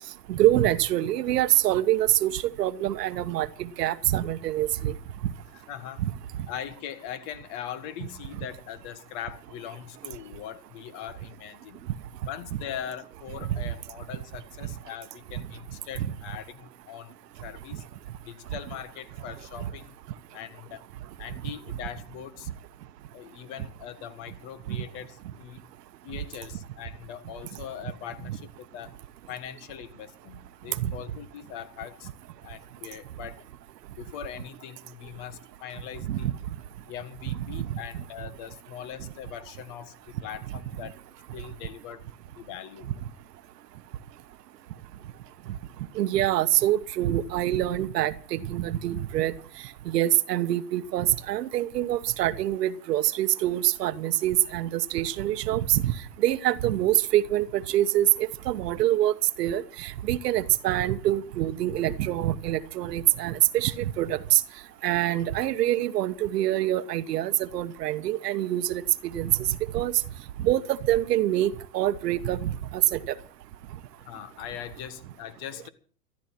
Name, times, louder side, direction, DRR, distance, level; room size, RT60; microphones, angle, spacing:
voice 1, 0.3-4.9 16.0-16.1 24.7-24.8 28.3-28.4 30.8-30.9 36.1-36.3 37.6-37.7 46.0-49.3 49.9-55.9 56.2-58.1 58.5-64.4 64.8-68.8 69.1-69.9 70.4-73.1, right 13 dB, 75° right, 1.2 m, -25 dB
voice 2, 5.7-6.0 6.5-11.9 12.3-17.1 17.4-17.9 18.2-20.0 20.3-20.9 21.2-22.5 23.1-25.7 26.0-29.0 29.3-32.1 32.4-33.4 34.0-36.4 36.9-41.0 41.3-42.1 42.3-42.9 74.0-75.7, left 10 dB, 45° left, 1.8 m, -41 dB
14.0 x 13.0 x 6.0 m
hypercardioid pair, 130°, 49 cm